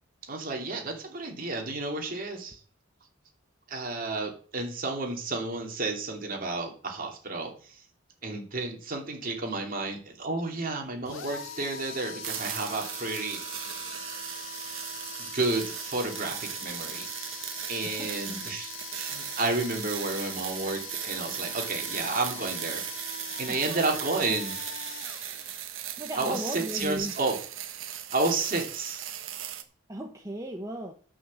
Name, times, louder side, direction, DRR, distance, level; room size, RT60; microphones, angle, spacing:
voice 1, 0.3-2.6 3.7-7.8 8.2-13.4 14.6-14.8 15.2-17.4 17.7-23.1 23.4-24.6 26.2-27.4 27.9-29.1, right 3 dB, 45° right, 2 dB, 2.9 m, -31 dB
sound 1, 11.1-25.9, left 4 dB, 80° left, 1.8 m, -42 dB
sound 2, 12.2-29.6, right 11 dB, 75° right, 1.3 m, -38 dB
voice 2, 17.8-18.5 23.5-23.8 24.3-24.4 26.0-27.2 29.9-30.9, right 1 dB, 15° right, 2 dB, 1.1 m, -37 dB
11.0 x 6.3 x 7.5 m, 0.43 s
head